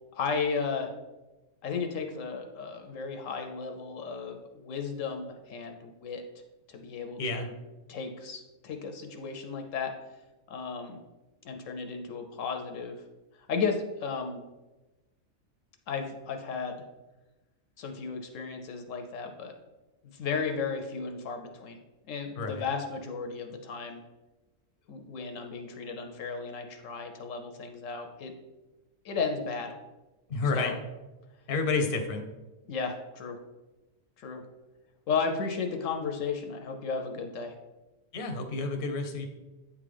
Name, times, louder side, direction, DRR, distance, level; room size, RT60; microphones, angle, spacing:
voice 1, 0.2-0.9 1.6-6.2 6.7-7.5 7.9-9.9 10.5-11.0 11.4-13.0 13.5-14.4 15.9-16.8 17.8-19.5 20.0-21.8 22.1-24.0 24.9-28.3 29.0-29.7 30.5-30.7 32.7-33.4 34.2-34.4 35.1-37.5, left 5 dB, 75° left, 4 dB, 1.0 m, -34 dB
voice 2, 30.3-30.8 31.5-32.3 38.1-39.3, left 3 dB, 50° left, 5 dB, 0.8 m, -30 dB
8.5 x 3.7 x 3.3 m, 1.1 s
omnidirectional pair, 1.4 m